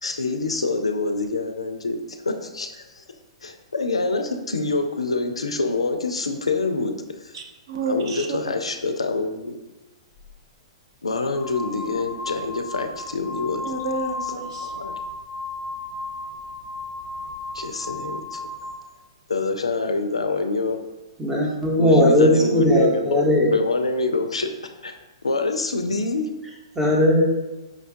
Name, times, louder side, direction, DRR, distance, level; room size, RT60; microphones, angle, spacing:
voice 1, 0.0-3.0 3.4-6.9 7.2-7.3 7.9-9.5 11.0-13.7 14.6-14.9 17.5-18.4 19.3-20.8 21.8-23.2 23.5-24.5 24.8-24.9 25.2-26.3, left 3 dB, 90° left, 6 dB, 0.3 m, -26 dB
voice 2, 7.3-8.4 13.6-14.7, right 3 dB, 60° right, 2 dB, 0.5 m, -30 dB
sound 1, 10.2-10.3 11.1-18.9, left 3 dB, 35° left, 0.5 m, -34 dB
voice 3, 21.2-23.5 26.7-27.3, left 1 dB, 10° right, -2 dB, 0.8 m, -18 dB
4.9 x 2.2 x 2.5 m, 1.1 s
hypercardioid pair, 115°, 3 cm